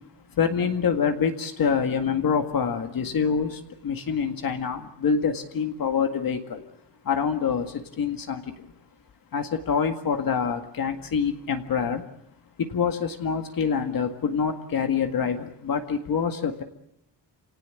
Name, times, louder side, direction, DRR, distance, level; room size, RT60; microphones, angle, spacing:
voice 1, 0.3-6.6 7.1-8.7 9.3-12.0 12.6-16.6, left 6 dB, 55° left, 5 dB, 2.0 m, -26 dB
28.5 x 18.0 x 8.3 m, 0.79 s
wide cardioid pair, 175°, 42 cm